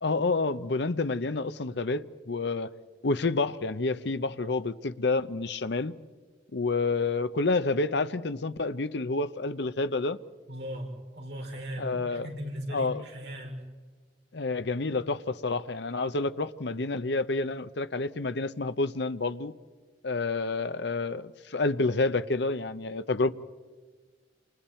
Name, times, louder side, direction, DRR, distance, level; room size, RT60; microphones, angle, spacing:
voice 1, 0.0-2.7 3.0-5.9 6.5-10.2 11.8-12.3 12.7-13.0 14.3-19.5 20.0-23.3, left 3 dB, 65° left, 0.8 m, -29 dB
voice 2, 10.5-13.6, equal, 60° right, 5.2 m, -38 dB
29.0 x 27.0 x 4.4 m
head